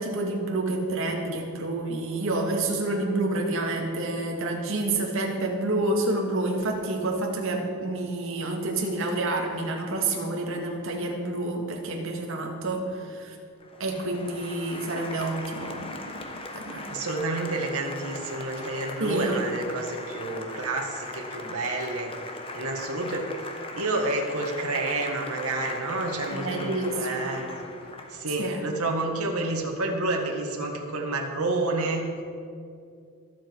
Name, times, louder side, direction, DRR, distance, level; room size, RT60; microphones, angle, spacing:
voice 1, 0.0-13.4 13.8-16.9 19.0-19.4 26.3-27.3 28.4-28.6, right 2 dB, 60° right, 1 dB, 2.2 m, -29 dB
Applause, 13.6-28.4, left 2 dB, 25° left, 1.1 m, -39 dB
voice 2, 16.9-22.1 22.5-23.3 23.7-27.5 28.1-32.1, right 2 dB, 80° right, 1 dB, 2.0 m, -29 dB
23.0 x 7.8 x 4.8 m, 2.4 s
head